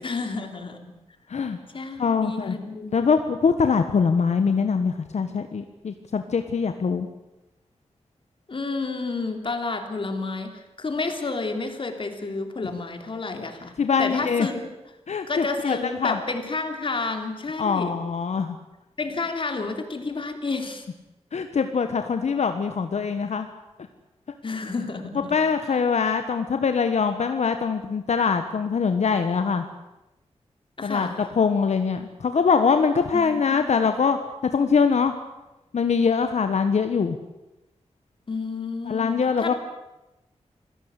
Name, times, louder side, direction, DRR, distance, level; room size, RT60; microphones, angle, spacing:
voice 1, 0.0-0.9 1.7-3.0 8.5-14.7 15.3-18.0 19.0-20.9 24.4-25.4 25.6-25.8 30.8-31.2 33.1-33.8 38.3-39.5, left 3 dB, 50° left, 6 dB, 3.2 m, -30 dB
voice 2, 2.0-2.6 2.9-7.1 13.8-14.5 15.1-16.2 17.6-18.6 21.3-23.5 25.3-29.6 30.8-31.1 31.4-34.2 34.5-35.1 35.7-37.2 38.9-39.5, left 5 dB, 80° left, 7 dB, 1.4 m, -23 dB
26.5 x 17.5 x 8.3 m, 0.98 s
wide cardioid pair, 130°, 11 cm